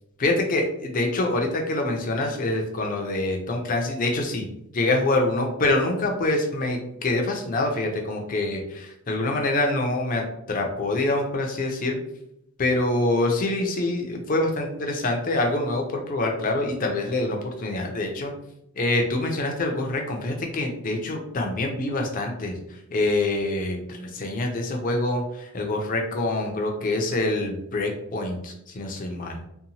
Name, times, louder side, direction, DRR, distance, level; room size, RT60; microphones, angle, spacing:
voice 1, 0.2-4.4 4.7-11.9 12.6-18.3 18.8-22.5 22.9-29.4, left 2 dB, 40° left, 2 dB, 0.5 m, -25 dB
2.8 x 2.1 x 2.7 m, 0.78 s
head